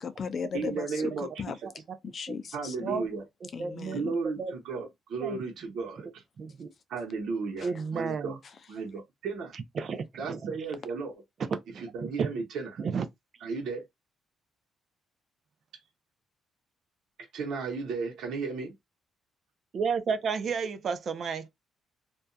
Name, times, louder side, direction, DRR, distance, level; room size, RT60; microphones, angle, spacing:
voice 1, 0.0-1.1 1.4-1.6 2.0-3.1 3.5-4.1 7.6-7.7, left 6 dB, 50° left, 0.4 m, -36 dB
voice 2, 0.5-1.3 2.5-3.2 3.8-6.2 6.9-8.4 8.7-9.6 10.2-11.2 11.8-12.7 13.4-13.8 17.3-18.7, right 4 dB, 75° right, 0.9 m, -34 dB
voice 3, 3.4-4.0 4.4-4.5 4.8-4.9 5.2-5.4 6.4-6.7 7.6-8.4 9.5-10.5 11.7-12.3 12.8-13.1 19.7-21.5, right 5 dB, 55° right, 0.5 m, -32 dB
2.6 x 2.3 x 2.3 m
cardioid pair, 90°, 0 cm